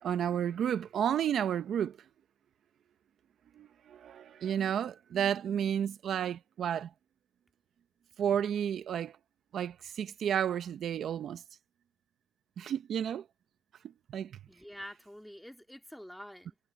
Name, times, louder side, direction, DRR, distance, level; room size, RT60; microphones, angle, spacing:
voice 1, 0.0-1.9 3.6-6.9 8.2-9.1 9.5-11.4 12.6-13.2 14.1-14.3, right 9 dB, 65° right, 0.9 m, -31 dB
voice 2, 14.5-16.6, equal, ahead, 2.3 m, -47 dB
cardioid pair, 90°, 0 cm